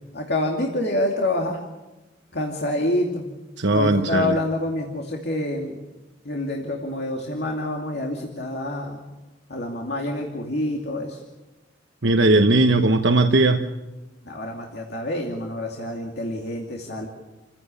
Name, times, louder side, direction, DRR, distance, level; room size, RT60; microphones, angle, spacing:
voice 1, 0.1-1.6 2.3-3.3 3.7-5.8 6.2-9.0 9.5-11.2 14.2-17.1, left 1 dB, 60° left, 0 dB, 2.6 m, -27 dB
voice 2, 3.6-4.4 12.0-13.6, right 2 dB, 75° right, 5 dB, 1.2 m, -18 dB
29.5 x 16.0 x 7.1 m, 1.1 s
head